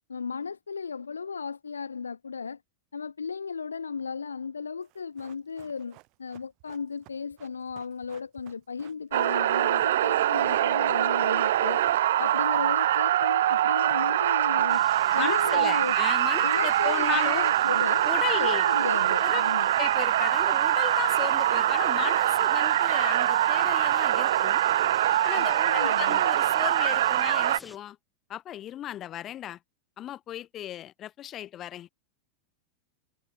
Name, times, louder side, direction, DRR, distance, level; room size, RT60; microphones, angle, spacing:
voice 1, 0.1-2.6 2.9-11.8 12.2-14.8 15.1-16.0 16.4-18.1 18.3-19.7 25.4-26.2, left 5 dB, 75° left, 1.1 m, -35 dB
Run, 4.8-15.4 15.7-15.8, right 27 dB, 40° right, 5.0 m, -56 dB
sound 1, 9.1-27.6, right 12 dB, 60° right, 0.3 m, -24 dB
sound 2, 14.7-27.8, equal, ahead, 7.7 m, -50 dB
voice 2, 15.1-17.5 18.0-18.7 19.2-19.4 19.7-24.6 25.2-28.0 28.3-29.6 30.0-31.9, left 12 dB, 30° left, 2.2 m, -35 dB
figure-of-eight pair, 90°, 0 cm